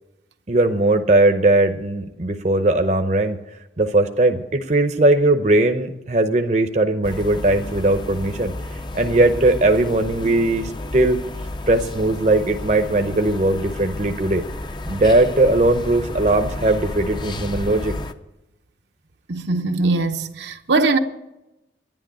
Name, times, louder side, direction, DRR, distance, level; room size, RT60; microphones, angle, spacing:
voice 1, 0.5-3.4 3.8-8.5 8.9-11.2 11.7-14.4 14.9-17.9, right 2 dB, 40° right, 0.8 m, -19 dB
sound 1, 7.0-18.1, left 1 dB, 25° left, 0.6 m, -32 dB
voice 2, 19.3-21.0, right 3 dB, 70° right, 0.9 m, -21 dB
11.0 x 10.5 x 9.0 m
head